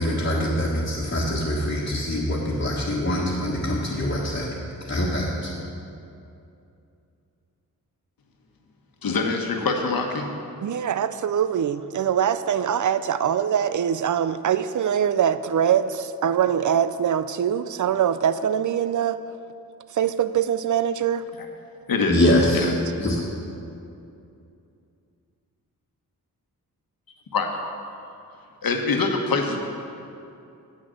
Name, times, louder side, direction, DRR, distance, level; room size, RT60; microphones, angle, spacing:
voice 1, 0.0-4.5 4.8-5.5 22.1-22.7 23.0-23.2, left 1 dB, 30° left, -6 dB, 1.6 m, -24 dB
voice 2, 9.0-10.3 21.9-22.2 22.5-22.7 27.3-27.5 28.6-29.6, left 4 dB, 70° left, 3 dB, 1.2 m, -24 dB
voice 3, 10.6-19.2 19.9-21.2, right 9 dB, 55° right, 12 dB, 0.5 m, -23 dB
8.3 x 6.2 x 7.9 m, 2.6 s
cardioid pair, 75°, 36 cm